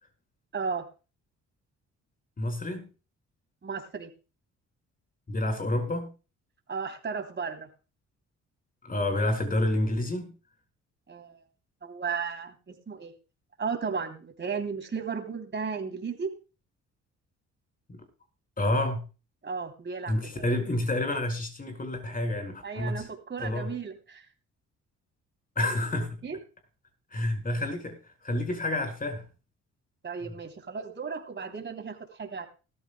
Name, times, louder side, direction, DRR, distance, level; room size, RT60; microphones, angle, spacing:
voice 1, 0.5-0.9 3.6-4.1 6.7-7.7 11.1-11.4 11.8-13.1 13.6-16.3 19.4-20.5 22.6-24.2 26.2-26.4 30.0-32.5, right 5 dB, 40° right, 6 dB, 3.1 m, -34 dB
voice 2, 2.4-2.8 5.3-6.1 8.8-10.3 17.9-18.0 18.6-19.1 20.1-23.1 23.4-23.7 25.6-26.2 27.1-28.0 28.2-29.2, left 1 dB, 30° left, 6 dB, 5.2 m, -29 dB
19.0 x 13.5 x 2.3 m, 0.33 s
cardioid pair, 90°, 30 cm